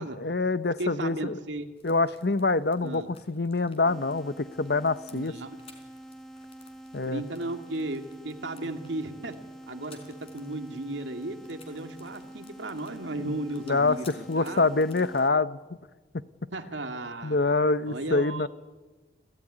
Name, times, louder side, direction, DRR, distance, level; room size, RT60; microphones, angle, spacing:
voice 1, 0.0-1.4 1.8-5.3 6.9-7.2 13.2-15.6 17.2-18.5, left 3 dB, 60° left, 15 dB, 0.8 m, -26 dB
voice 2, 0.8-1.7 2.8-3.1 5.1-5.6 7.0-9.4 9.7-10.0 10.3-14.7 16.5-17.4 17.9-18.5, right 2 dB, 85° right, 6 dB, 2.4 m, -35 dB
sound 1, 1.8-15.2, left 5 dB, 30° left, 4.1 m, -58 dB
sound 2, 3.9-15.3, right 1 dB, 5° left, 1.4 m, -46 dB
29.5 x 16.5 x 9.9 m, 1.3 s
head